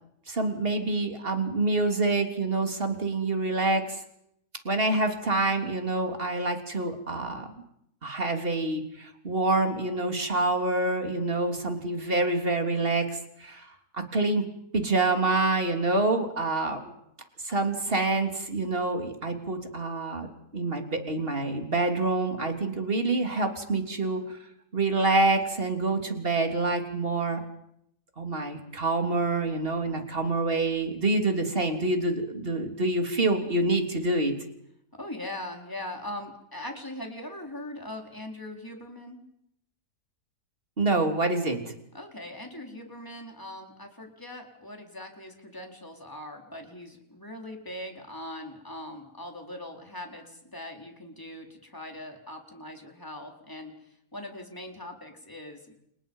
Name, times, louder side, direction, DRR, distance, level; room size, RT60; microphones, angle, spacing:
voice 1, 0.3-4.0 4.7-7.5 8.0-14.4 14.7-16.9 17.4-20.3 20.5-24.4 24.7-27.4 28.2-34.3 40.8-41.6, right 2 dB, 35° right, 4 dB, 3.6 m, -27 dB
voice 2, 34.9-39.2 41.9-55.7, left 1 dB, 10° left, 2 dB, 4.5 m, -41 dB
29.5 x 29.5 x 5.6 m, 0.76 s
omnidirectional pair, 1.7 m